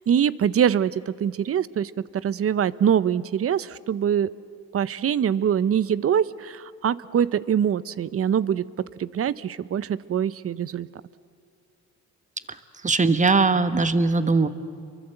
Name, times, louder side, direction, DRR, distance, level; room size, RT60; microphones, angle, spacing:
voice 1, 0.1-4.3 4.7-8.6 9.0-10.9, right 8 dB, 50° right, 17 dB, 0.8 m, -24 dB
voice 2, 12.8-14.5, right 3 dB, 25° right, 11 dB, 1.4 m, -20 dB
29.0 x 23.5 x 8.0 m, 2.3 s
cardioid pair, 90°, 30 cm